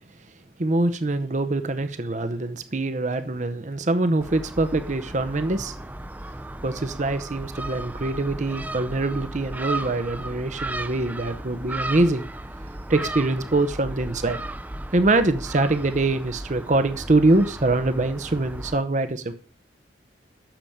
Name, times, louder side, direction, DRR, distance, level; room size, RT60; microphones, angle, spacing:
voice 1, 0.6-5.7 6.6-12.2 12.9-14.4 14.9-19.3, right 2 dB, 45° right, 10 dB, 0.8 m, -24 dB
Gull seagull, 4.2-18.8, right 1 dB, 10° right, 0.5 m, -35 dB
8.9 x 6.8 x 8.7 m, 0.42 s
head